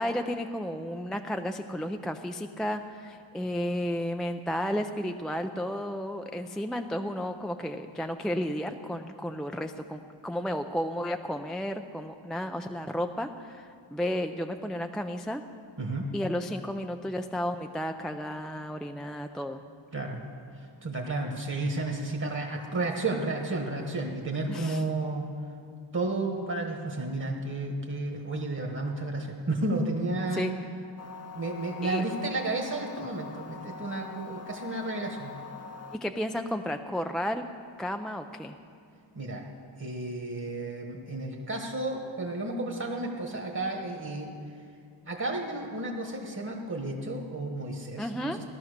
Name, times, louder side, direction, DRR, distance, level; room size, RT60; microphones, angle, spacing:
voice 1, 0.0-15.4 16.1-19.6 24.5-24.8 30.3-30.5 31.8-32.0 36.0-37.5 37.8-38.6 48.0-48.4, equal, ahead, 6 dB, 0.3 m, -33 dB
voice 2, 15.8-16.1 19.9-20.2 20.6-25.3 25.9-30.5 31.3-35.4 39.1-39.4 39.8-44.3 45.1-48.4, right 2 dB, 40° right, 0 dB, 1.6 m, -32 dB
sound 1, 31.0-36.0, left 5 dB, 30° left, 0.7 m, -44 dB
17.0 x 12.0 x 6.6 m, 2.3 s
wide cardioid pair, 175°, 49 cm